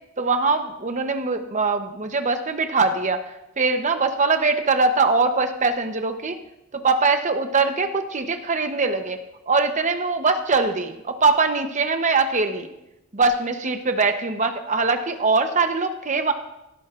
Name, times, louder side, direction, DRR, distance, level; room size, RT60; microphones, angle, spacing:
voice 1, 0.2-3.2 3.6-6.4 6.7-9.2 9.5-12.7 13.1-16.3, right 4 dB, 35° right, 7 dB, 0.8 m, -22 dB
16.5 x 12.0 x 2.5 m, 0.91 s
head